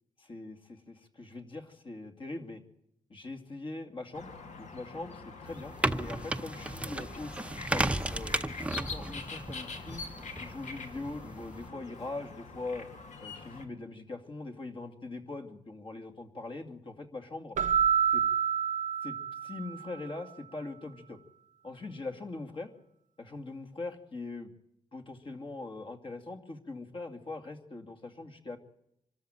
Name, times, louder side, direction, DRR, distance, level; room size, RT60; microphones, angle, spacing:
voice 1, 0.2-2.6 3.1-10.0 10.4-12.9 13.2-17.6 18.1-18.2 19.0-19.2 19.4-21.2 21.6-22.7 23.2-24.5 24.9-28.6, left 2 dB, 45° left, 5 dB, 2.5 m, -42 dB
sound 1, 4.1-13.7, left 4 dB, 70° left, 2.4 m, -44 dB
sound 2, 5.5-11.7, right 1 dB, 10° right, 0.7 m, -35 dB
Keyboard (musical), 17.6-20.0, right 8 dB, 80° right, 0.7 m, -28 dB
25.0 x 13.5 x 9.1 m, 0.79 s
wide cardioid pair, 115°, 13 cm